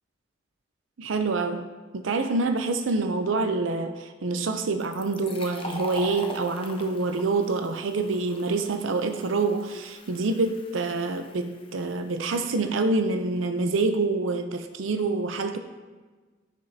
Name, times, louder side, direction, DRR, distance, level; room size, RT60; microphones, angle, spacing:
voice 1, 1.0-1.6 1.9-15.6, right 3 dB, 90° right, 7 dB, 0.6 m, -26 dB
Fill (with liquid), 4.8-12.2, left 2 dB, 30° left, 0.8 m, -42 dB
9.7 x 9.7 x 2.8 m, 1.3 s
head